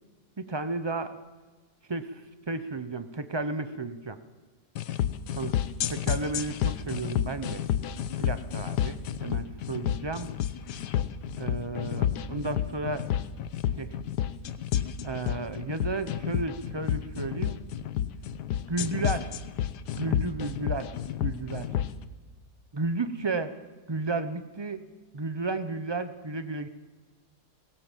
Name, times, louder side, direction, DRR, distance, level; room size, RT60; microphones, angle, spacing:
voice 1, 0.4-1.2 1.9-2.2 2.5-4.2 5.4-5.5 5.9-7.6 8.2-10.3 11.4-13.2 13.8-13.9 15.0-17.6 18.7-19.3 20.0-20.9 21.2-21.7 22.7-23.5 23.9-24.8 25.1-26.7, right 3 dB, 35° right, 11 dB, 0.4 m, -33 dB
sound 1, 4.8-21.9, left 10 dB, 80° left, 1.4 m, -30 dB
20.0 x 18.0 x 7.4 m, 1.3 s
omnidirectional pair, 1.8 m